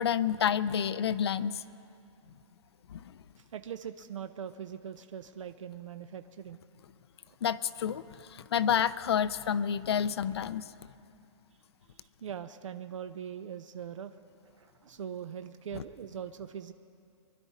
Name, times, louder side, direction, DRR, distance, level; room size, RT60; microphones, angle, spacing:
voice 1, 0.0-1.6 2.9-3.1 7.4-10.7 15.7-15.8, left 8 dB, 55° left, 16 dB, 0.5 m, -29 dB
voice 2, 3.4-6.6 7.3-7.4 11.9-14.2 14.5-16.7, right 8 dB, 75° right, 10 dB, 0.6 m, -42 dB
24.5 x 11.5 x 4.2 m, 2.6 s
hypercardioid pair, 175°, 16 cm